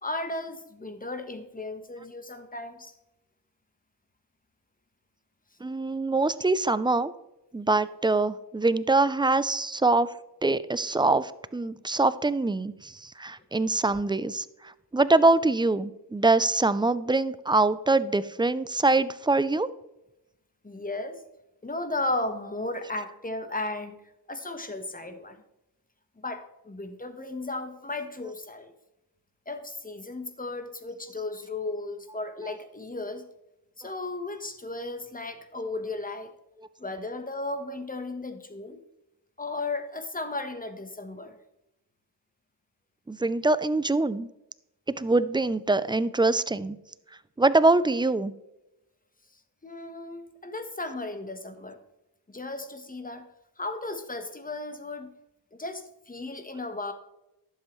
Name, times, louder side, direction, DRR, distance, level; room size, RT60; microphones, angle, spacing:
voice 1, 0.0-2.9 20.6-21.2 21.6-24.0 24.3-25.4 26.2-28.7 29.5-33.2 33.8-36.3 36.8-38.8 39.4-41.4 49.6-51.8 52.3-53.3 53.6-55.1 55.5-56.9, left 2 dB, 20° left, 8 dB, 1.2 m, -35 dB
voice 2, 5.6-7.1 7.5-10.1 10.4-19.7 43.1-44.3 44.9-46.8 47.4-48.3, right 2 dB, 10° right, 15 dB, 0.4 m, -24 dB
11.5 x 7.6 x 3.1 m, 0.91 s
cardioid pair, 70°, 45 cm